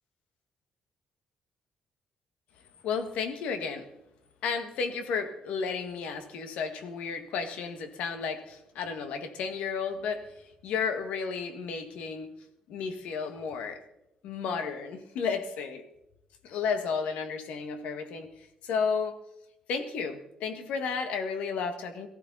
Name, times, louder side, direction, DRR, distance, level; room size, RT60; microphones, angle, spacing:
voice 1, 2.8-3.9 4.4-10.3 10.6-12.3 12.7-13.8 14.2-15.8 16.4-19.2 19.7-22.1, left 5 dB, 85° left, 1.7 m, -32 dB
18.5 x 15.0 x 4.1 m
cardioid pair, 165°, 2 cm